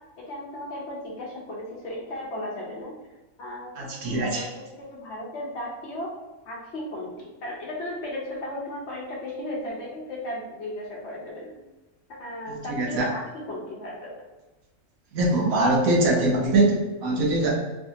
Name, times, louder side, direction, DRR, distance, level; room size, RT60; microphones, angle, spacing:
voice 1, 0.2-2.9 3.4-4.5 4.8-6.1 6.5-11.6 12.1-14.1, left 1 dB, 60° left, -3 dB, 0.9 m, -35 dB
voice 2, 3.7-4.5 12.5-13.1 15.1-17.5, right 2 dB, 80° right, -1 dB, 1.2 m, -23 dB
3.3 x 2.6 x 2.7 m, 1.1 s
omnidirectional pair, 1.5 m